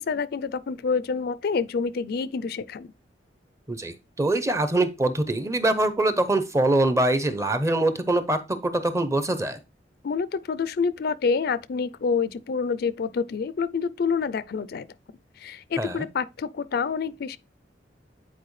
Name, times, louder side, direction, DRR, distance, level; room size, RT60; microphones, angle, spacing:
voice 1, 0.0-2.9 10.0-14.9 15.4-17.4, left 5 dB, 60° left, 0.4 m, -27 dB
voice 2, 3.7-9.6 15.8-16.1, right 2 dB, 15° right, 0.8 m, -24 dB
9.3 x 4.4 x 3.2 m
head